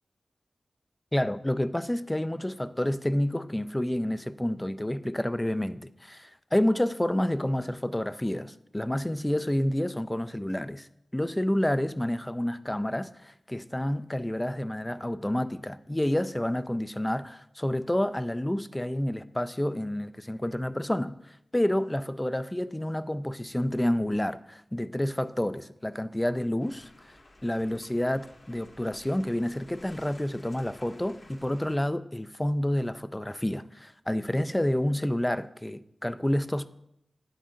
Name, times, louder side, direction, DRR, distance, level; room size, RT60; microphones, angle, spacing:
voice 1, 1.1-26.9 27.4-36.7, left 1 dB, 15° left, 0.3 m, -29 dB
sound 1, 26.6-31.8, left 1 dB, 45° left, 1.0 m, -53 dB
9.8 x 8.9 x 2.6 m
wide cardioid pair, 80°, 0 cm